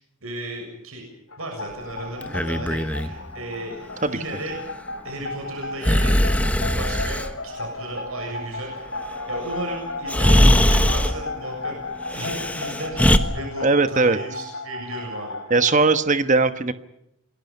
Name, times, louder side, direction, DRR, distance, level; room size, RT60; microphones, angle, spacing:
voice 1, 0.2-1.0 1.4-4.6 5.0-6.2 6.5-11.8 12.1-13.0 13.3-15.4, right 1 dB, 80° right, 2 dB, 7.1 m, -35 dB
sound 1, 1.3-15.9, left 2 dB, 75° left, 3.1 m, -34 dB
Breathing, 2.2-3.1 5.8-7.3 9.5-9.6 10.1-11.2 12.1-13.2, equal, 5° left, 1.3 m, -20 dB
voice 2, 13.6-14.2 15.5-16.7, right 3 dB, 35° right, 10 dB, 1.2 m, -19 dB
28.0 x 21.5 x 5.5 m, 0.85 s
head